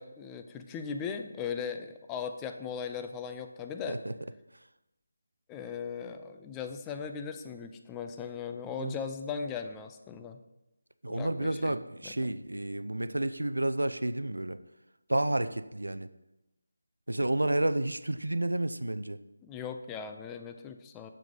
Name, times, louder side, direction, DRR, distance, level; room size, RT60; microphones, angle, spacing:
voice 1, 0.0-4.0 5.5-10.4 11.1-12.4 19.4-21.1, left 6 dB, 10° left, 6 dB, 0.4 m, -38 dB
voice 2, 11.0-14.6 15.1-16.1 17.1-19.2, right 1 dB, 85° right, 13 dB, 0.4 m, -30 dB
6.7 x 6.0 x 3.8 m, 0.95 s
figure-of-eight pair, 160°, 0 cm